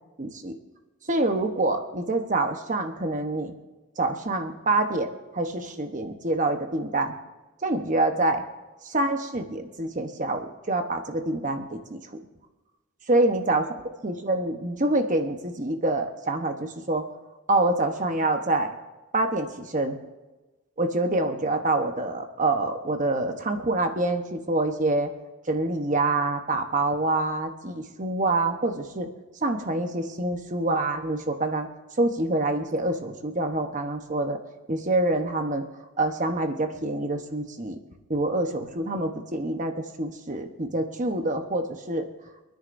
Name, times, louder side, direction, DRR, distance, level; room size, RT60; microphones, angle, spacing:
voice 1, 0.2-0.5 1.1-3.5 4.0-7.1 7.6-8.4 8.8-12.0 13.1-13.6 14.0-17.0 17.5-18.7 19.1-20.0 20.8-25.1 25.5-29.1 29.4-31.7 32.0-34.4 34.7-35.6 36.0-37.8 38.1-42.0, right 2 dB, 35° right, 6 dB, 1.0 m, -26 dB
27.0 x 10.5 x 2.7 m, 1.1 s
head